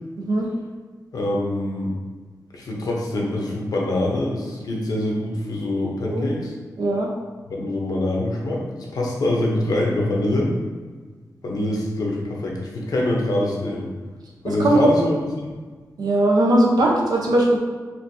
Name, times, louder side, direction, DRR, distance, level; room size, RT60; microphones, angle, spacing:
voice 1, 1.1-1.9 2.5-6.5 7.5-10.5 11.4-13.9 14.4-15.6, left 1 dB, 70° left, -2 dB, 0.8 m, -24 dB
voice 2, 6.8-7.1 14.4-14.8 16.0-17.6, right 1 dB, 85° right, -1 dB, 0.7 m, -19 dB
4.4 x 2.6 x 2.7 m, 1.4 s
wide cardioid pair, 165°, 7 cm